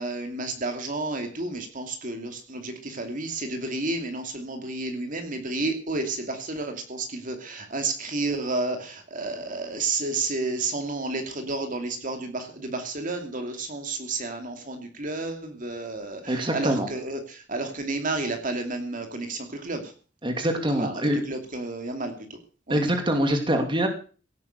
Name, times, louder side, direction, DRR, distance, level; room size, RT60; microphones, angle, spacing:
voice 1, 0.0-19.9 20.8-22.4 22.7-22.8, right 2 dB, 45° right, 5 dB, 2.7 m, -31 dB
voice 2, 16.3-16.9 20.2-21.2 22.7-23.9, right 1 dB, 25° right, 5 dB, 2.7 m, -24 dB
17.0 x 9.4 x 6.7 m, 0.39 s
head